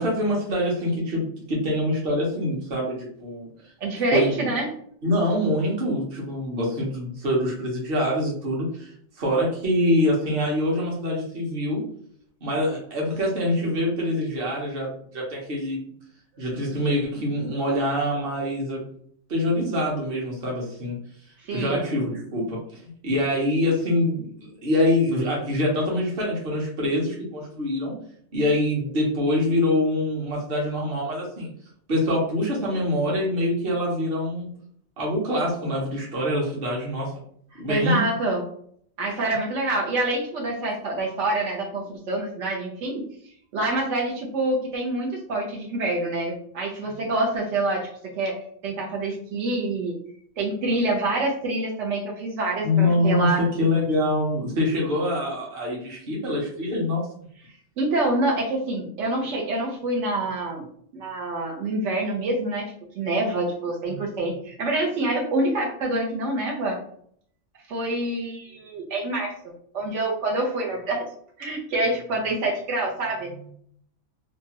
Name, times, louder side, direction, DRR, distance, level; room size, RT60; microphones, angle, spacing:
voice 1, 0.0-3.5 4.1-4.5 5.0-8.9 9.2-11.8 12.4-15.8 16.4-18.8 19.3-21.0 21.5-22.6 23.0-27.9 28.3-31.5 31.9-34.5 35.0-37.1 37.6-38.0 52.6-57.0, left 1 dB, 55° right, -2 dB, 1.1 m, -25 dB
voice 2, 3.8-4.7 21.4-21.8 37.7-38.4 39.0-43.0 43.5-47.9 48.2-49.9 50.4-53.4 57.8-60.6 60.9-66.8 67.7-71.1 71.4-73.5, right 2 dB, 85° right, -1 dB, 1.0 m, -26 dB
2.9 x 2.2 x 2.8 m, 0.63 s
omnidirectional pair, 1.2 m